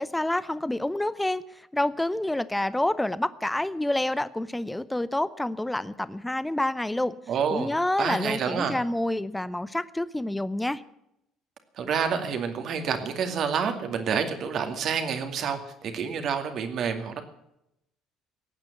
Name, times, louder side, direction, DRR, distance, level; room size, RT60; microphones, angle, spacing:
voice 1, 0.0-7.2 7.5-10.8, left 1 dB, 10° left, 16 dB, 0.7 m, -28 dB
voice 2, 7.3-7.7 8.0-8.8 11.8-17.2, right 6 dB, 55° right, 6 dB, 2.3 m, -28 dB
15.5 x 9.0 x 9.2 m, 0.83 s
hypercardioid pair, 60°, 0 cm